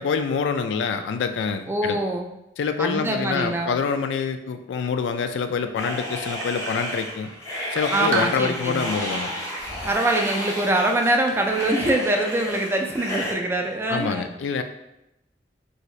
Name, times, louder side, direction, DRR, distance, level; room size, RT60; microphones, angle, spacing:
voice 1, 0.0-2.0 2.6-7.3 7.7-9.3 13.9-14.6, left 5 dB, 80° left, 8 dB, 0.3 m, -26 dB
voice 2, 1.7-2.3 2.8-3.7 7.9-9.0 9.9-14.3, right 1 dB, 15° right, 3 dB, 0.3 m, -24 dB
sound 1, 5.8-13.3, equal, 15° left, 0.7 m, -32 dB
sound 2, 6.4-7.3 7.7-8.8 9.2-9.3 9.9-10.9 11.2-11.9, right 5 dB, 80° right, 0.6 m, -33 dB
3.2 x 2.7 x 3.0 m, 0.88 s
head